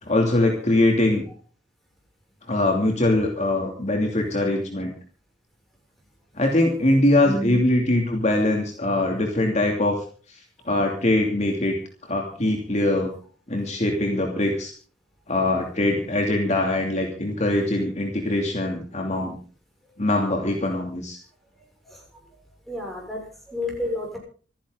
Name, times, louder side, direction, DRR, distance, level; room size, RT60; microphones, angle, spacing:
voice 1, 0.0-1.2 2.5-4.9 6.3-10.4 10.6-11.7 12.0-13.1 13.5-14.7 15.3-19.4 20.0-21.2, left 1 dB, 40° left, 1 dB, 2.8 m, -22 dB
voice 2, 7.2-7.6 21.8-22.0 22.7-24.2, left 1 dB, ahead, -2 dB, 6.7 m, -30 dB
27.0 x 10.5 x 4.0 m, 0.41 s
head